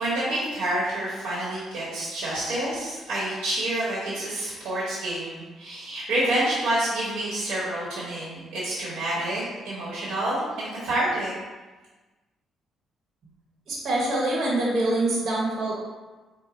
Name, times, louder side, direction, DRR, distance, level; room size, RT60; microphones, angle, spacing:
voice 1, 0.0-11.3, right 1 dB, 85° right, -8 dB, 1.1 m, -28 dB
voice 2, 13.7-15.7, right 2 dB, 60° right, -4 dB, 1.0 m, -25 dB
3.9 x 2.1 x 4.2 m, 1.2 s
cardioid pair, 90°, 0 cm